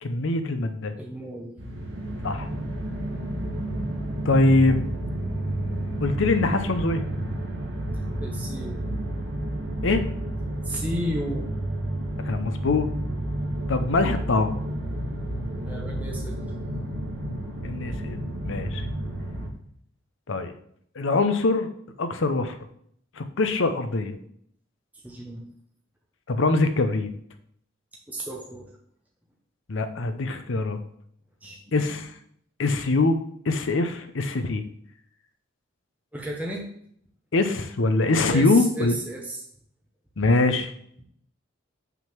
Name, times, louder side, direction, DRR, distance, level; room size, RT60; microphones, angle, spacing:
voice 1, 0.0-0.9 2.2-2.5 4.2-4.9 6.0-7.0 9.8-10.0 12.3-12.9 13.7-14.5 17.6-18.8 20.3-20.5 21.0-21.7 22.0-22.6 23.2-24.2 26.3-27.1 29.7-30.8 31.7-32.1 32.6-33.2 33.5-34.6 37.3-39.0 40.2-40.7, left 3 dB, 65° left, 9 dB, 0.7 m, -23 dB
voice 2, 1.0-1.5 8.2-8.8 10.6-11.5 15.6-16.6 25.0-25.4 28.1-28.7 31.4-32.0 36.1-36.6 38.3-39.4 41.0-41.1, right 1 dB, 10° right, -1 dB, 0.8 m, -33 dB
sound 1, 1.6-19.5, right 1 dB, 70° right, 1.4 m, -31 dB
5.9 x 3.7 x 5.8 m, 0.67 s
head